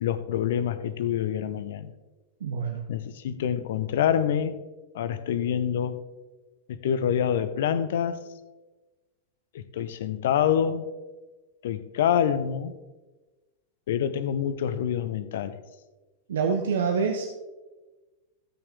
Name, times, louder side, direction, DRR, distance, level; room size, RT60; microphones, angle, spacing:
voice 1, 0.0-1.9 2.9-4.6 4.9-6.0 6.7-8.3 9.5-10.9 11.6-12.7 13.9-15.6, left 9 dB, 55° left, 0.7 m, -26 dB
voice 2, 2.4-2.9 16.3-17.3, right 5 dB, 65° right, 0.8 m, -26 dB
15.0 x 5.6 x 3.5 m
figure-of-eight pair, 90°, 0 cm